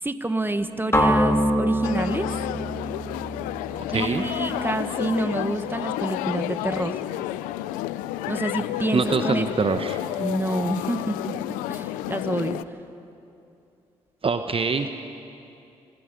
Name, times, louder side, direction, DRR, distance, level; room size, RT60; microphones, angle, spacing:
voice 1, 0.0-2.3 3.9-7.0 8.3-9.5 10.2-11.4 11.7-12.6, right 2 dB, 15° right, 9 dB, 1.5 m, -27 dB
sound 1, 0.9-4.9, equal, 20° left, 3.1 m, -25 dB
sound 2, 1.8-12.6, left 14 dB, 85° left, 0.5 m, -31 dB
voice 2, 3.9-4.2 8.9-10.0 14.2-14.9, right 4 dB, 45° right, 8 dB, 1.0 m, -24 dB
25.5 x 21.0 x 5.3 m, 2.7 s
hypercardioid pair, 40°, 14 cm